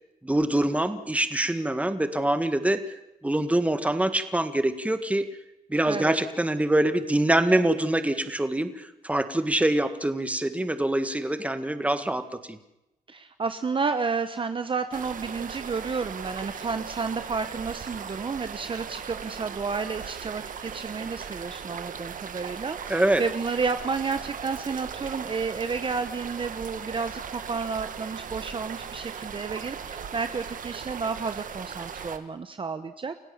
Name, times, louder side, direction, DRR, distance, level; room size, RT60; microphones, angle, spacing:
voice 1, 0.2-2.8 3.2-5.3 5.7-12.6 22.9-23.2, right 1 dB, 10° right, 9 dB, 1.8 m, -25 dB
voice 2, 5.9-6.2 13.1-33.2, right 5 dB, 35° right, 10 dB, 1.1 m, -31 dB
sound 1, 14.9-32.2, right 7 dB, 60° right, 1.7 m, -38 dB
29.5 x 16.0 x 7.2 m, 0.92 s
cardioid pair, 90°, 15 cm